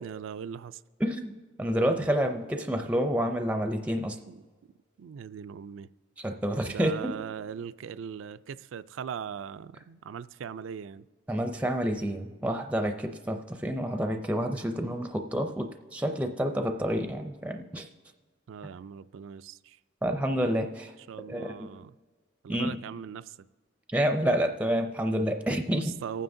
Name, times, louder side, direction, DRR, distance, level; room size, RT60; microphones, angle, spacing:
voice 1, 0.0-0.8 4.3-4.4 5.0-5.9 6.7-11.0 18.5-19.8 21.1-21.9 22.4-23.4 25.7-26.2, right 7 dB, 85° right, 0.3 m, -39 dB
voice 2, 1.0-1.3 1.6-4.2 6.2-7.1 11.3-17.9 20.0-20.9 21.3-21.7 22.5-22.8 23.9-25.9, equal, 5° right, 0.4 m, -29 dB
25.0 x 9.2 x 2.6 m
head